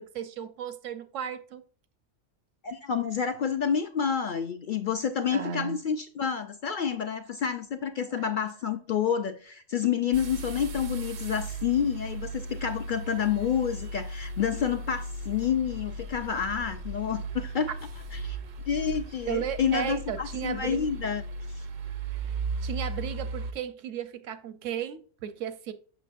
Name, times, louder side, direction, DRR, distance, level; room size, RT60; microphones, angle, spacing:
voice 1, 0.0-1.6 5.3-5.8 8.2-8.3 19.3-20.9 22.1-25.7, right 9 dB, 85° right, 1.1 m, -35 dB
voice 2, 2.6-17.7 18.2-18.4 18.7-21.2 21.5-21.6, left 8 dB, 60° left, 0.5 m, -29 dB
sound 1, 10.1-23.5, right 2 dB, 60° right, 0.5 m, -36 dB
6.9 x 6.1 x 2.5 m
omnidirectional pair, 1.3 m